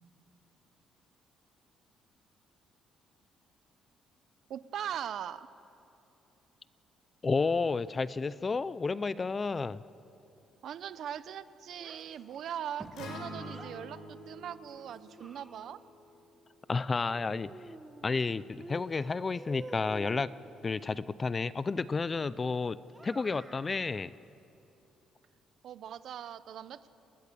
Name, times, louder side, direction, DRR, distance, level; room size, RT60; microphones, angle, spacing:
voice 1, 4.5-5.5 10.6-15.8 25.6-26.9, right 9 dB, 55° right, 14 dB, 0.8 m, -40 dB
voice 2, 7.2-9.8 16.7-17.5 18.0-20.3 20.6-22.8 23.0-24.1, left 4 dB, 25° left, 17 dB, 0.4 m, -31 dB
Child speech kid speaking, 11.8-13.8 14.7-15.9 17.1-18.2 18.6-20.3 22.9-23.7, right 2 dB, 10° right, 1.6 m, -49 dB
Acoustic guitar, 13.0-17.2, left 1 dB, 70° left, 4.7 m, -47 dB
29.0 x 20.5 x 6.9 m, 2.9 s
cardioid pair, 150°, 0 cm